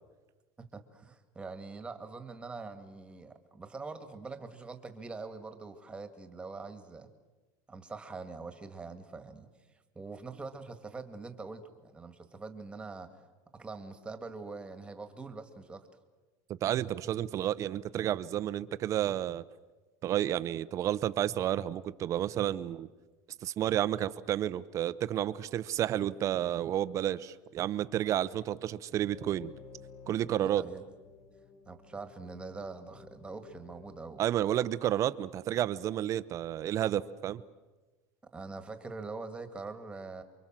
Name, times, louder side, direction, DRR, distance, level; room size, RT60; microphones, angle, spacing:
voice 1, 0.7-7.1 7.7-9.5 10.0-13.1 13.5-15.9 30.4-30.8 31.7-34.2 38.3-40.2, right 3 dB, 10° right, 8 dB, 2.0 m, -43 dB
voice 2, 16.6-19.4 20.0-22.9 23.4-29.5 30.1-30.6 34.2-37.4, right 11 dB, 35° right, 14 dB, 0.8 m, -31 dB
sound 1, 29.1-34.1, left 5 dB, 50° left, 5.2 m, -54 dB
28.5 x 23.5 x 7.5 m, 1.2 s
supercardioid pair, 145°, 9 cm